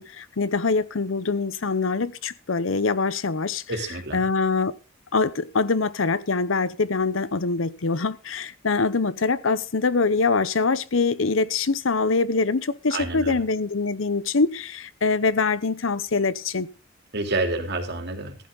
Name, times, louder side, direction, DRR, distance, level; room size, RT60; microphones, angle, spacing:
voice 1, 0.0-3.6 4.1-4.7 5.1-16.7, left 4 dB, 80° left, 0.8 m, -24 dB
voice 2, 3.7-4.2 12.9-13.4 17.1-18.4, right 2 dB, 60° right, 3.4 m, -28 dB
15.5 x 11.5 x 4.0 m
head